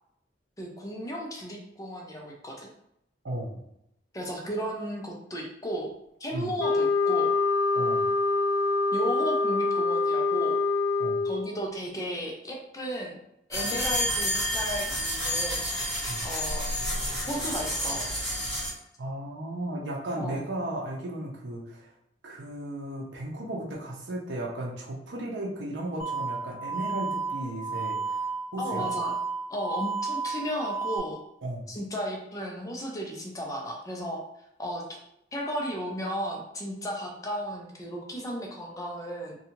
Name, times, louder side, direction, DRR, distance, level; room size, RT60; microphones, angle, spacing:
voice 1, 0.6-2.7 4.1-5.9 6.2-7.4 8.9-10.6 11.2-13.2 13.5-15.6 16.2-16.7 17.3-18.1 20.1-20.3 28.6-29.1 29.5-31.2 31.7-34.2 34.6-35.0 35.3-39.4, equal, 20° left, 0 dB, 0.4 m, -34 dB
voice 2, 3.2-3.6 6.3-6.5 7.7-8.1 11.0-11.2 16.1-16.2 19.0-21.9 22.2-28.9 31.4-31.7, right 1 dB, 70° right, -1 dB, 0.6 m, -35 dB
sound 1, 6.6-11.5, left 3 dB, 80° left, 0.4 m, -25 dB
sound 2, 13.5-18.7, equal, ahead, 1.3 m, -30 dB
sound 3, 26.0-31.0, right 4 dB, 50° left, 0.7 m, -32 dB
2.6 x 2.3 x 2.9 m, 0.78 s
head